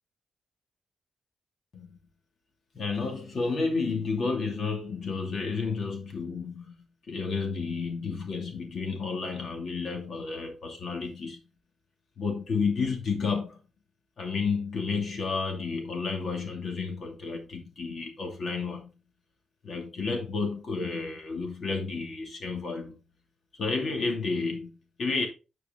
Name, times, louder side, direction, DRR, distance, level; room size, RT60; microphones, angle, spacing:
voice 1, 2.7-6.7 7.1-11.4 12.2-13.6 14.2-18.9 19.6-23.0 23.6-25.3, left 4 dB, 55° left, 2.5 m, -31 dB
10.0 x 4.9 x 3.9 m
cardioid pair, 120°, 0 cm